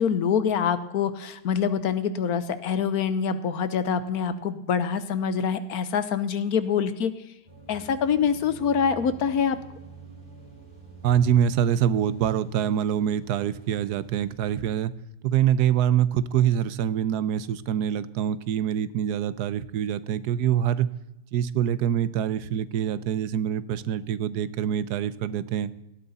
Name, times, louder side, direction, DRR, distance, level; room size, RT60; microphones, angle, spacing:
voice 1, 0.0-7.1 7.7-9.6, left 7 dB, 70° left, 12 dB, 1.3 m, -25 dB
sound 1, 7.5-14.5, right 4 dB, 25° right, 2.9 m, -47 dB
voice 2, 11.0-14.9 15.2-20.9 21.3-25.7, right 9 dB, 80° right, 16 dB, 1.2 m, -25 dB
18.0 x 13.0 x 4.1 m, 0.87 s
omnidirectional pair, 1.7 m